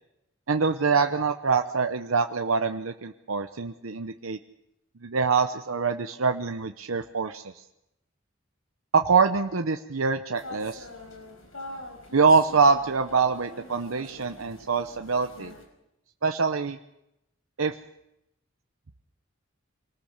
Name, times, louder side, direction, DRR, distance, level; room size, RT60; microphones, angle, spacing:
voice 1, 0.5-4.4 5.0-7.6 8.9-10.9 12.1-15.5 16.2-16.8 17.6-17.7, right 5 dB, 85° right, 6 dB, 0.8 m, -24 dB
sound 1, 10.4-15.6, left 2 dB, 90° left, 5.6 m, -44 dB
25.5 x 19.5 x 6.6 m, 0.86 s
head